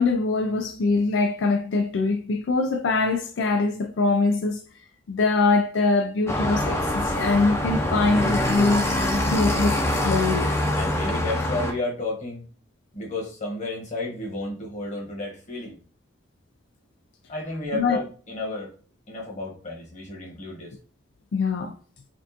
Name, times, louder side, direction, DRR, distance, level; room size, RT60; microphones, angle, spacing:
voice 1, 0.0-4.6 5.1-8.9 9.1-10.5 17.7-18.0 21.3-21.7, left 3 dB, 80° left, 0.4 m, -23 dB
sound 1, 6.3-11.7, left 1 dB, 15° left, 0.5 m, -24 dB
voice 2, 10.8-12.4 12.9-15.7 17.3-18.7 19.1-20.7, left 2 dB, 40° left, 1.2 m, -32 dB
4.4 x 2.4 x 2.8 m
head